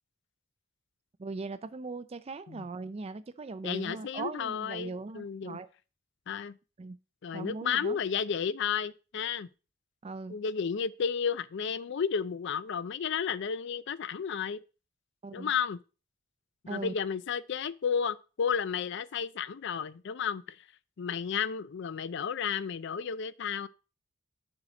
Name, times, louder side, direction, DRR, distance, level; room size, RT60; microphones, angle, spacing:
voice 1, 1.2-5.7 6.8-7.0 7.3-8.0 10.0-10.4 15.2-15.5 16.7-16.9, right 3 dB, 30° right, 0.4 m, -39 dB
voice 2, 3.6-5.6 6.3-6.6 7.2-9.5 10.3-14.6 15.3-15.8 16.7-20.6 21.0-23.7, left 7 dB, 60° left, 0.4 m, -32 dB
7.5 x 6.3 x 3.9 m
head